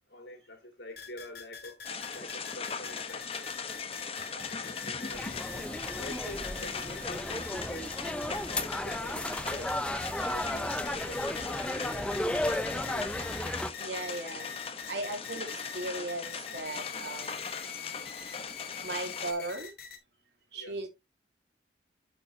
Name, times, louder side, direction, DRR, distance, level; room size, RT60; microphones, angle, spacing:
voice 1, 0.1-3.6 4.3-5.7 6.0-8.1 8.5-9.8 10.2-12.2 12.7-13.2 20.5-20.8, left 1 dB, 75° left, 2.8 m, -47 dB
sound 1, 1.0-20.0, left 7 dB, 60° left, 1.9 m, -45 dB
sound 2, 1.8-19.3, left 5 dB, 30° left, 0.9 m, -40 dB
sound 3, 5.1-13.7, left 1 dB, 5° left, 0.5 m, -34 dB
voice 2, 13.8-14.5 14.9-17.4 17.9-18.0 18.8-19.7 20.5-20.9, right 2 dB, 70° right, 2.8 m, -37 dB
8.3 x 7.4 x 2.7 m
head